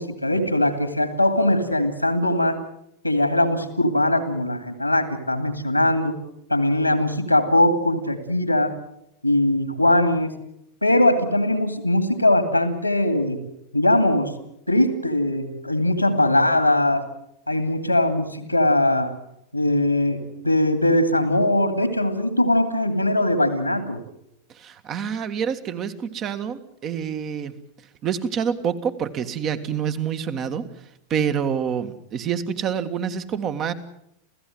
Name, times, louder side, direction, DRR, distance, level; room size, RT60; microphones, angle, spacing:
voice 1, 0.0-2.6 3.0-6.2 6.5-8.7 9.2-10.3 10.8-13.4 13.7-14.3 14.7-17.0 17.5-19.1 19.5-24.0, left 1 dB, 90° left, 10 dB, 2.3 m, -21 dB
voice 2, 24.6-27.5 28.0-30.7 31.1-33.7, right 7 dB, 30° right, 10 dB, 1.7 m, -27 dB
28.5 x 16.0 x 7.7 m, 0.79 s
figure-of-eight pair, 90°, 0 cm